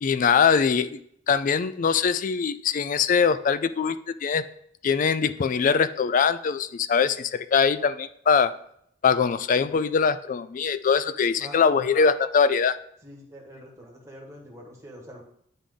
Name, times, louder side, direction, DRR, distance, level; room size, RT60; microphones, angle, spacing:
voice 1, 0.0-1.0 1.3-4.4 4.8-8.5 9.0-12.8, left 6 dB, 45° left, 13 dB, 0.3 m, -22 dB
voice 2, 11.4-11.8 13.0-15.2, equal, 15° right, -2 dB, 1.5 m, -44 dB
10.0 x 3.7 x 3.7 m, 0.69 s
head